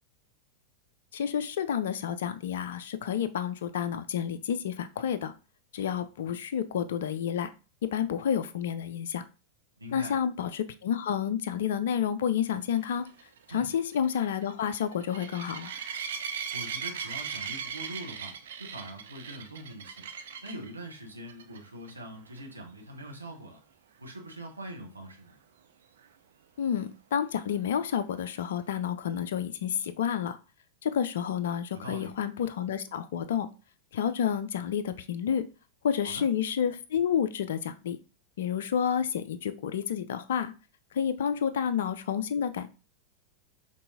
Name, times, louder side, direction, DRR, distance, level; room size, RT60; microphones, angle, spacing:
voice 1, 1.1-5.3 5.7-7.5 7.8-9.2 9.9-13.1 13.5-15.7 26.6-30.4 30.8-33.5 33.9-35.4 35.8-38.0 38.4-40.5 40.9-42.7, left 8 dB, 60° left, 12 dB, 0.4 m, -30 dB
voice 2, 9.8-10.1 13.5-13.7 16.5-20.0 20.4-23.6 24.0-25.4 31.7-32.1 36.0-36.2, right 1 dB, 80° right, 2 dB, 1.0 m, -43 dB
sound 1, 12.8-20.7 21.3-21.6 21.9-22.0 22.4-22.5 26.0-26.1, right 7 dB, 60° right, 0.4 m, -38 dB
5.3 x 3.3 x 2.7 m, 0.33 s
figure-of-eight pair, 90°, 0 cm